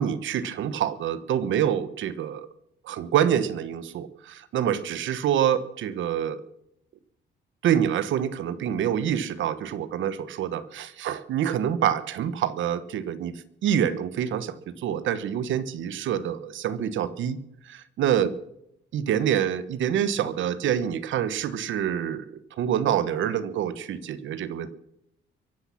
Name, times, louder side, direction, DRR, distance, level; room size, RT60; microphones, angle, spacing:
voice 1, 0.0-2.5 2.8-6.4 7.6-17.4 17.6-18.3 18.9-22.3 22.6-24.7, right 9 dB, 75° right, 14 dB, 1.1 m, -26 dB
23.0 x 8.5 x 5.9 m, 0.79 s
cardioid pair, 90°, 20 cm